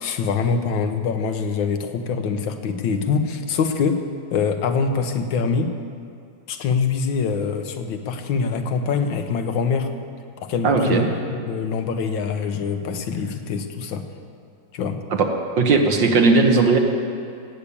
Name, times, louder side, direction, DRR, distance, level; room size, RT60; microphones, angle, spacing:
voice 1, 0.0-4.0 4.3-5.7 6.5-9.9 10.4-11.1 11.4-14.0 14.7-15.0, left 5 dB, 80° left, 7 dB, 1.8 m, -24 dB
voice 2, 10.6-11.1 15.2-15.3 15.6-16.8, right 3 dB, 70° right, 3 dB, 1.9 m, -17 dB
17.5 x 8.5 x 8.5 m, 2.4 s
omnidirectional pair, 2.1 m